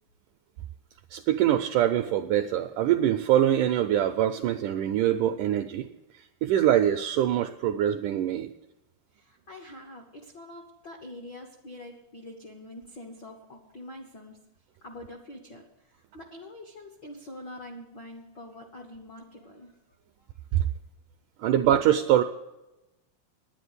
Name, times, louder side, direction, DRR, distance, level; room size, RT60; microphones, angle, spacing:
voice 1, 1.1-5.9 6.4-8.5 20.5-20.6 21.4-22.2, right 11 dB, 85° right, 7 dB, 1.8 m, -24 dB
voice 2, 9.1-14.4 14.8-19.7, left 1 dB, 75° left, 1 dB, 1.0 m, -45 dB
10.0 x 10.0 x 8.1 m, 0.97 s
omnidirectional pair, 4.2 m